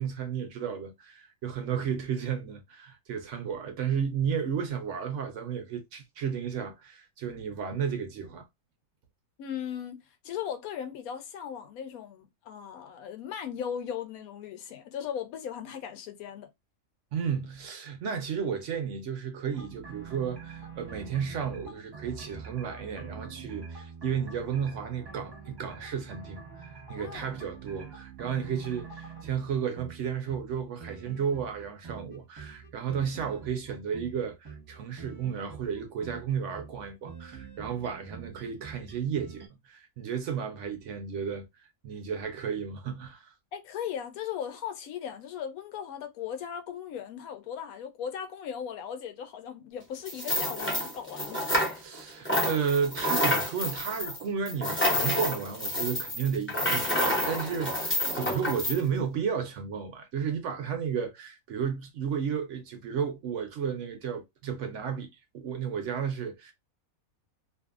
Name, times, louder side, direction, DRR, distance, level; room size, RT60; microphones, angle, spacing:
voice 1, 0.0-8.4 17.1-26.4 26.9-41.5 41.8-43.3 51.8-66.5, right 7 dB, 65° right, 0.8 m, -33 dB
voice 2, 9.4-10.0 10.2-16.5 27.0-27.3 43.5-51.8, left 8 dB, 80° left, 1.0 m, -38 dB
sound 1, 19.5-39.5, right 6 dB, 20° right, 0.8 m, -45 dB
sound 2, 50.1-52.0 52.2-58.8, equal, 10° left, 0.6 m, -29 dB
2.6 x 2.5 x 2.4 m
omnidirectional pair, 1.5 m